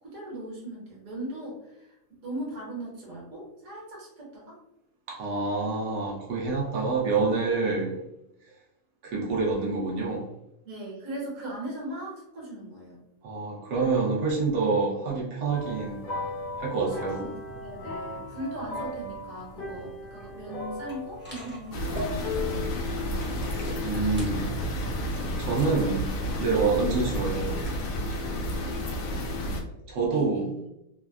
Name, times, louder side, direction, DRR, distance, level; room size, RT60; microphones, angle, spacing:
voice 1, 0.0-4.6 10.6-13.0 16.7-22.3 25.6-25.9 26.5-26.7 28.2-28.5 30.1-30.6, right 1 dB, 60° right, -4 dB, 1.5 m, -39 dB
voice 2, 5.1-8.0 9.0-10.2 13.2-16.0 16.6-17.2 23.5-24.5 25.4-26.0 26.4-27.5 29.9-30.5, right 4 dB, 90° right, -4 dB, 1.3 m, -27 dB
sound 1, 15.5-22.7, left 2 dB, 65° left, 1.1 m, -37 dB
sound 2, 20.9-28.0, right 1 dB, 10° right, 0.6 m, -42 dB
sound 3, 21.7-29.6, left 1 dB, 90° left, 1.2 m, -31 dB
3.5 x 2.1 x 2.3 m, 0.86 s
omnidirectional pair, 1.7 m